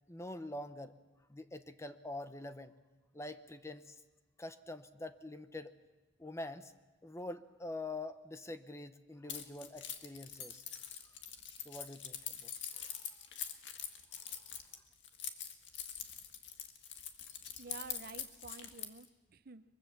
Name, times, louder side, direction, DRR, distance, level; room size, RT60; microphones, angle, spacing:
voice 1, 0.1-0.9 1.3-2.7 3.1-4.0 4.4-5.7 6.2-6.7 7.0-10.6 11.6-13.0, left 2 dB, 15° left, 11 dB, 0.8 m, -45 dB
Keys jangling, 9.3-19.1, left 9 dB, 70° left, 1.8 m, -44 dB
voice 2, 17.6-19.6, right 4 dB, 50° right, 13 dB, 0.7 m, -50 dB
23.5 x 22.5 x 7.2 m, 1.2 s
head